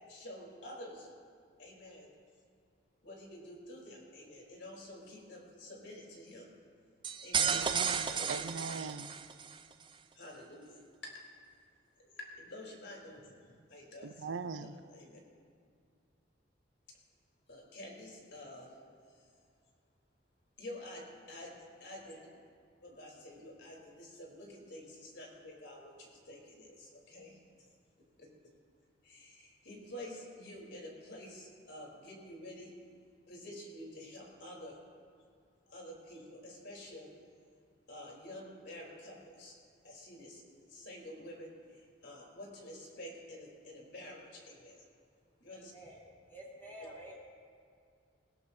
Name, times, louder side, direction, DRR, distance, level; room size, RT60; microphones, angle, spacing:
voice 1, 0.1-1.1 1.6-2.1 3.0-6.5 7.2-7.6 8.0-8.5 10.2-10.7 11.0-11.1 12.1-13.2 13.7-14.1 14.6-15.2 17.5-18.7 20.6-21.5 21.8-22.2 22.8-27.4 29.1-32.7 33.3-34.8 35.7-37.1 37.9-39.5 39.8-40.4 40.7-41.5 42.0-44.8 45.4-45.7, left 1 dB, 70° left, 3.7 m, -49 dB
sound 1, 7.0-9.6, right 7 dB, 25° right, 0.5 m, -33 dB
voice 2, 7.3-9.1 14.0-14.8, right 4 dB, 90° right, 0.6 m, -41 dB
voice 3, 45.5-46.0 46.3-47.2, equal, 10° left, 3.3 m, -50 dB
20.5 x 18.0 x 2.7 m
head